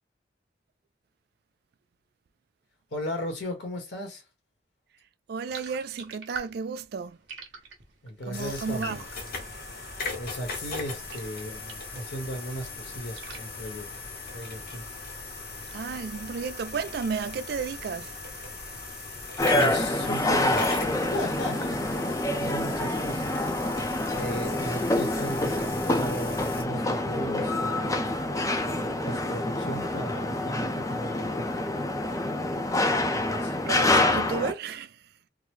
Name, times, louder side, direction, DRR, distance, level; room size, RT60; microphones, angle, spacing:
voice 1, 2.9-4.2 8.0-9.0 10.1-13.9 14.3-14.9 19.5-23.5 24.1-28.1 28.6-31.5 33.1-33.6, equal, 80° left, 1.3 m, -36 dB
voice 2, 5.3-7.2 8.3-9.0 15.7-18.5 33.7-35.0, right 5 dB, 60° right, 0.3 m, -33 dB
sound 1, 5.4-12.0 12.4-14.4, right 5 dB, 80° right, 1.0 m, -46 dB
sound 2, 8.3-26.6, left 3 dB, 55° left, 0.9 m, -38 dB
sound 3, 19.4-34.5, left 1 dB, 20° left, 0.5 m, -27 dB
3.8 x 2.1 x 3.1 m
head